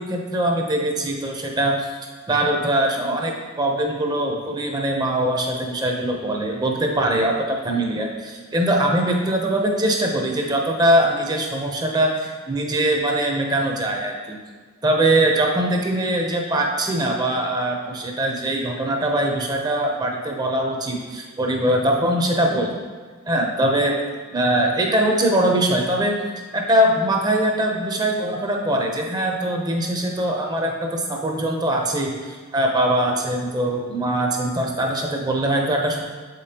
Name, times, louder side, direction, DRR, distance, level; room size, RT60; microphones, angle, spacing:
voice 1, 0.0-1.9 2.3-14.4 14.8-22.8 23.3-24.0 24.3-26.2 26.5-36.0, right 1 dB, 20° right, 1 dB, 0.7 m, -22 dB
7.1 x 5.2 x 2.9 m, 1.5 s
head